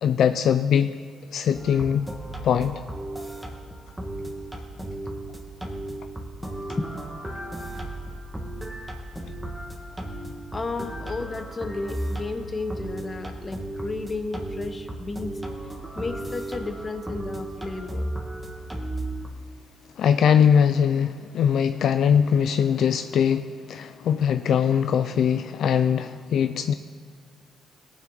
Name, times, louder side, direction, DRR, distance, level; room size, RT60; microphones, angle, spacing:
voice 1, 0.0-0.9 1.3-2.1 2.4-2.8 20.0-26.7, left 8 dB, 70° left, 10 dB, 0.4 m, -21 dB
sound 1, 1.5-19.3, right 1 dB, 10° right, 1.8 m, -35 dB
voice 2, 10.5-15.4 16.0-18.1, left 3 dB, 30° left, 7 dB, 1.1 m, -33 dB
18.0 x 7.5 x 4.0 m, 2.1 s
cardioid pair, 90°, 0 cm